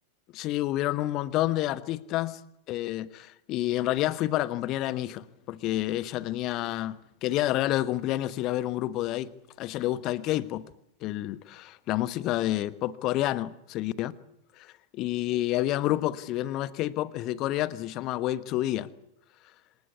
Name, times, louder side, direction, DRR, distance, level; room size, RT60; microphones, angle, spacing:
voice 1, 0.3-2.4 2.7-9.3 9.6-10.6 11.0-14.1 14.6-14.7 14.9-18.9, left 15 dB, 40° left, 17 dB, 1.2 m, -29 dB
25.5 x 19.0 x 8.3 m, 0.79 s
figure-of-eight pair, 90°, 0 cm